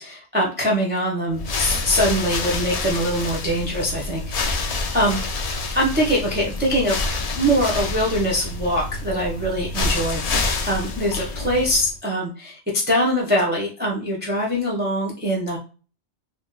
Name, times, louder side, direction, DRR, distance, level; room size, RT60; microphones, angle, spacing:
voice 1, 0.0-4.2 4.6-7.1 7.3-12.6 12.9-15.6, equal, 15° right, -4 dB, 0.4 m, -23 dB
sound 1, 1.3-12.0, left 3 dB, 75° left, 0.3 m, -27 dB
2.6 x 2.1 x 3.7 m, 0.37 s
omnidirectional pair, 1.2 m